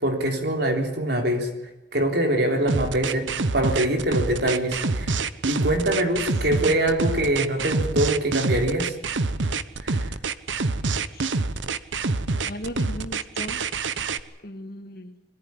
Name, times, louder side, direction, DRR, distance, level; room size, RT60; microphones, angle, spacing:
voice 1, 0.0-1.5 1.9-3.3 3.5-5.2 5.5-8.9 9.8-10.1, right 1 dB, 60° right, 3 dB, 3.7 m, -24 dB
sound 1, 2.7-14.2, right 3 dB, 80° right, 1.0 m, -26 dB
voice 2, 12.5-13.6 14.4-15.1, equal, 55° left, 7 dB, 1.9 m, -36 dB
22.0 x 14.5 x 9.7 m, 0.99 s
head